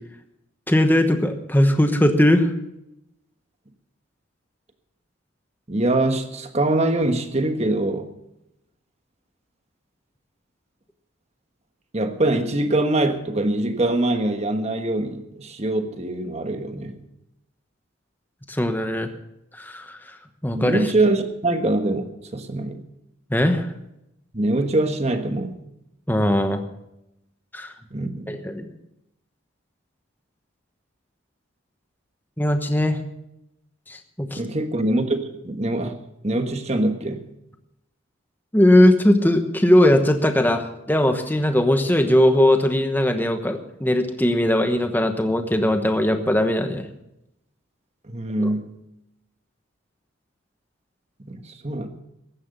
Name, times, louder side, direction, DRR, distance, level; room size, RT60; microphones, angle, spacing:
voice 1, 0.7-2.5 18.5-19.1 19.5-20.2 20.4-20.8 23.3-23.7 26.1-26.6 27.5-27.7 28.3-28.7 32.4-33.0 33.9-34.4 38.5-46.9 48.4-48.5, left 1 dB, 10° left, 7 dB, 1.1 m, -19 dB
voice 2, 5.7-8.1 11.9-17.0 20.5-22.8 24.3-25.6 27.9-28.4 34.3-36.0 36.2-37.3 48.1-48.7 51.2-51.9, right 2 dB, 30° right, 7 dB, 1.4 m, -23 dB
15.0 x 11.0 x 6.7 m, 0.86 s
head